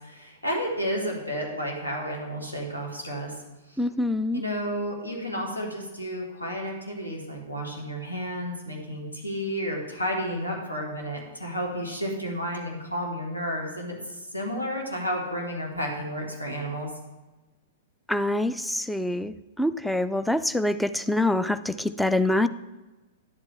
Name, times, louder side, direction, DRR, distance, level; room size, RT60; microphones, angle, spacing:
voice 1, 0.0-3.4 3.7-3.8 4.3-16.9, equal, 90° left, 0 dB, 1.9 m, -31 dB
voice 2, 3.8-4.4 18.1-22.5, left 1 dB, ahead, 13 dB, 0.3 m, -25 dB
10.5 x 8.0 x 3.4 m, 1.1 s
figure-of-eight pair, 105°, 0 cm